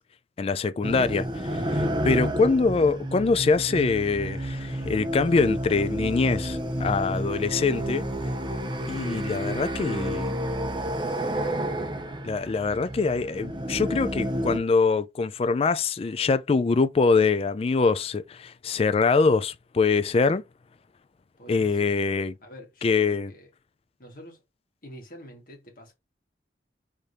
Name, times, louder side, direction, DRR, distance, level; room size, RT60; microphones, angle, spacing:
voice 1, 0.4-8.1 8.9-10.3 12.2-20.4 21.5-22.3 22.8-23.3, left 4 dB, 35° left, 0.3 m, -24 dB
sound 1, 0.8-14.6, equal, 25° right, 0.7 m, -30 dB
voice 2, 21.4-22.0 22.4-23.5 24.0-24.4 24.8-25.9, equal, 50° left, 1.9 m, -46 dB
3.5 x 3.3 x 4.1 m
head